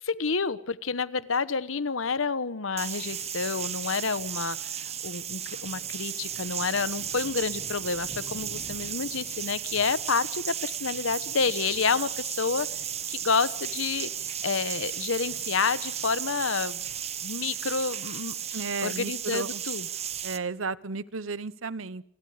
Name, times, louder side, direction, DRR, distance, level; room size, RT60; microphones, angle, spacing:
voice 1, 0.0-4.6 5.0-16.8 17.2-19.9, left 5 dB, 85° left, 16 dB, 1.0 m, -29 dB
sound 1, 2.8-20.4, right 9 dB, 35° right, 1.2 m, -34 dB
voice 2, 18.5-19.6 20.2-22.0, right 4 dB, 90° right, 17 dB, 1.0 m, -33 dB
28.5 x 22.0 x 4.9 m, 0.66 s
head